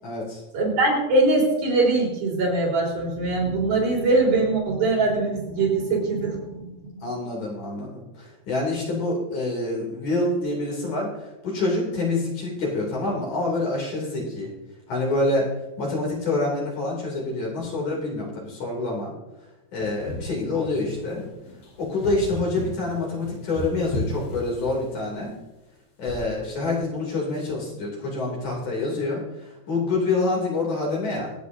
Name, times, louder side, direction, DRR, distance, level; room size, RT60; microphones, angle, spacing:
voice 1, 0.0-0.4 7.0-14.5 14.9-15.5 15.8-19.1 19.7-21.2 21.8-25.3 26.0-31.3, left 2 dB, 55° left, -3 dB, 4.2 m, -27 dB
voice 2, 0.5-6.9, right 2 dB, 75° right, -4 dB, 5.9 m, -22 dB
sound 1, 19.8-25.1 26.1-26.4, left 1 dB, 80° left, 6.3 m, -34 dB
25.0 x 9.2 x 2.7 m, 1.0 s
omnidirectional pair, 4.2 m